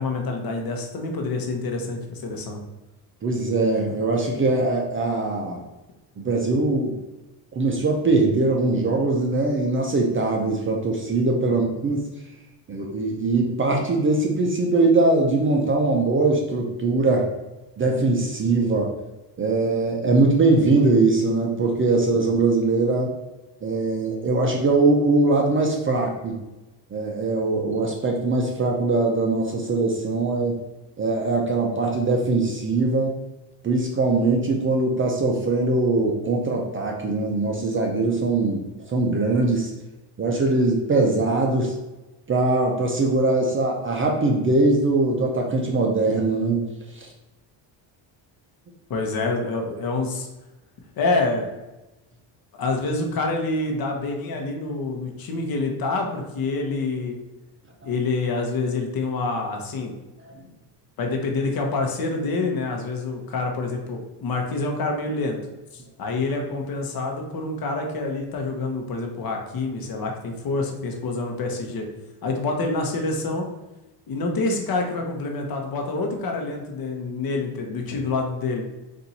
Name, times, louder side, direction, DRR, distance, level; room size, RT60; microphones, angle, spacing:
voice 1, 0.0-2.6 11.5-11.6 48.9-50.3 51.0-51.5 52.6-57.2 57.8-59.9 61.0-65.4 65.7-71.9 72.2-73.5 74.1-78.7, left 3 dB, 45° left, 2 dB, 1.0 m, -27 dB
voice 2, 3.2-5.6 6.2-7.0 7.5-12.1 12.7-17.3 17.8-18.9 19.4-23.1 23.6-26.4 26.9-30.6 31.0-33.1 33.6-39.7 40.2-41.7 42.3-46.7 47.0-47.1 57.8-57.9 60.2-60.4, right 3 dB, 25° right, 1 dB, 0.5 m, -21 dB
4.3 x 2.6 x 4.0 m, 1.0 s
cardioid pair, 120°, 49 cm